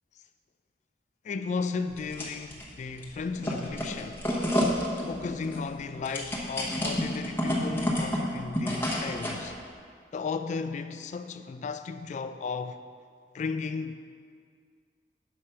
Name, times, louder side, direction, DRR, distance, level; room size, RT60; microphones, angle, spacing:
voice 1, 1.2-4.2 5.1-9.5 10.1-12.8 13.3-13.9, left 4 dB, 45° left, 0.3 m, -35 dB
sound 1, 1.9-2.7 3.0-9.5, equal, 15° left, 1.0 m, -30 dB
6.8 x 4.9 x 5.7 m
head